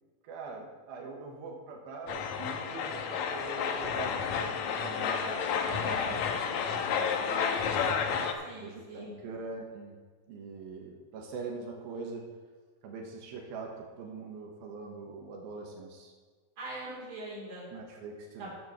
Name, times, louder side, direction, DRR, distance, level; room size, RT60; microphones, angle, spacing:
voice 1, 0.2-7.9 8.5-10.0 10.3-12.3 12.8-16.1 17.7-18.5, right 4 dB, 90° right, 0 dB, 3.1 m, -43 dB
sound 1, 2.1-8.3, left 6 dB, 75° left, 1.7 m, -31 dB
voice 2, 5.7-6.1 8.4-9.2 16.6-17.7 18.4-18.5, right 1 dB, 35° right, -5 dB, 4.0 m, -42 dB
14.0 x 9.3 x 3.1 m, 1.5 s
omnidirectional pair, 4.2 m